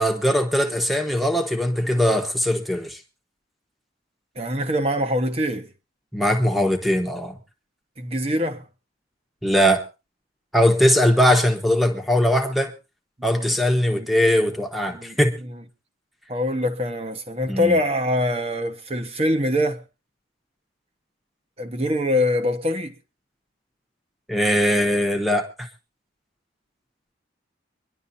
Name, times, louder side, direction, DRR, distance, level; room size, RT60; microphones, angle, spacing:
voice 1, 0.0-3.0 6.1-7.4 9.4-9.8 10.5-12.7 13.2-15.3 17.5-17.8 24.3-25.7, equal, ahead, 1.1 m, -20 dB
voice 2, 4.4-5.7 8.0-8.6 13.2-13.5 13.9-14.1 14.9-15.6 16.3-19.8 21.6-22.9, left 1 dB, 30° right, 1.1 m, -24 dB
24.5 x 11.0 x 2.7 m
head